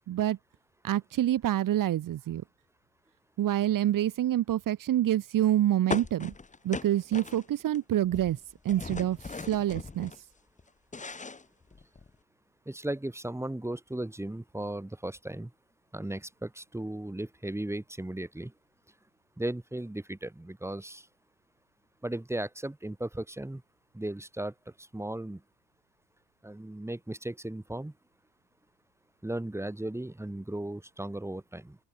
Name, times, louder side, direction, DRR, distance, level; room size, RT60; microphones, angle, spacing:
voice 1, 0.1-0.4 0.8-2.4 3.4-6.3 6.6-8.4 8.7-9.2 9.5-10.1, right 12 dB, 50° right, 3.5 m, -27 dB
sound 1, 5.9-7.8 8.0-10.2 10.6-12.1, left 4 dB, 20° left, 4.5 m, -38 dB
voice 2, 12.7-15.5 15.9-18.5 19.4-21.1 22.0-23.6 23.9-25.4 26.4-27.9 29.2-31.8, right 1 dB, 5° right, 5.7 m, -36 dB
open air
supercardioid pair, 100°, 41 cm